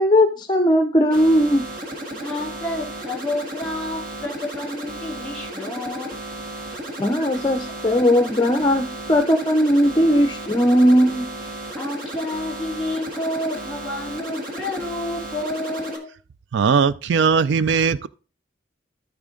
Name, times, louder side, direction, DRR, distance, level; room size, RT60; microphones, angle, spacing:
voice 1, 0.0-1.7 7.0-11.3, equal, 25° left, 0.5 m, -18 dB
sound 1, 1.1-16.0, right 1 dB, 50° right, 1.8 m, -34 dB
voice 2, 2.1-6.2 11.8-16.1, left 1 dB, ahead, 3.1 m, -30 dB
voice 3, 16.5-18.1, right 6 dB, 70° right, 0.3 m, -19 dB
13.5 x 4.5 x 3.8 m
head